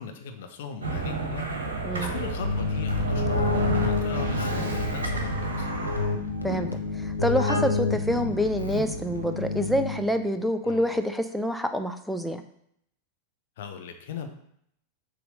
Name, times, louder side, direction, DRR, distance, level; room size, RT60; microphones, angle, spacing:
voice 1, 0.0-5.7 10.6-11.0 13.6-14.3, left 6 dB, 55° left, 6 dB, 0.8 m, -39 dB
sound 1, 0.8-9.2, right 2 dB, 65° right, 1.2 m, -32 dB
voice 2, 1.8-2.1 6.4-6.7 6.9-12.4, equal, ahead, 7 dB, 0.6 m, -27 dB
Keyboard (musical), 2.4-10.3, left 3 dB, 85° left, 0.7 m, -29 dB
sound 2, 3.1-7.1, right 7 dB, 35° right, 1.5 m, -46 dB
6.8 x 3.1 x 5.3 m, 0.71 s
figure-of-eight pair, 90°, 0 cm